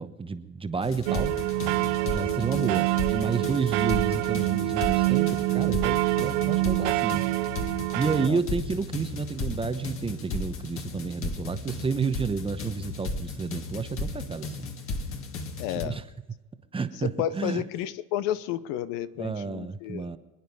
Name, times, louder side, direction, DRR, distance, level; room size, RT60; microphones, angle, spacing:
voice 1, 0.0-1.3 2.0-7.2 7.9-14.7 15.8-16.0 16.7-17.6 19.2-20.2, right 5 dB, 15° right, 10 dB, 0.9 m, -31 dB
sound 1, 0.8-15.9, left 3 dB, 40° left, 1.8 m, -35 dB
sound 2, 1.1-8.3, right 23 dB, 60° right, 0.5 m, -26 dB
voice 2, 15.6-16.0 17.0-20.1, left 12 dB, 65° left, 15 dB, 0.9 m, -31 dB
25.5 x 9.3 x 5.4 m, 1.1 s
supercardioid pair, 120°, 35 cm